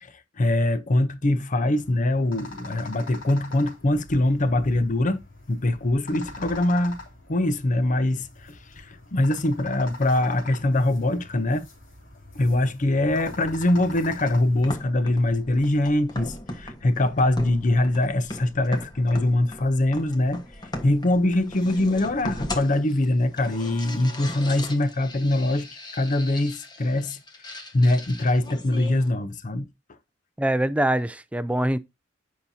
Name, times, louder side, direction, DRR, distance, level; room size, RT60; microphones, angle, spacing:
voice 1, 0.0-7.0 7.3-11.7 12.3-20.5 20.8-29.7, left 1 dB, 45° left, 0.7 m, -23 dB
sound 1, 1.6-14.8, left 3 dB, 80° left, 3.2 m, -44 dB
sound 2, 13.1-29.1, left 1 dB, 20° left, 1.3 m, -38 dB
voice 2, 30.4-31.8, right 1 dB, 5° right, 0.4 m, -23 dB
9.5 x 5.7 x 2.7 m
head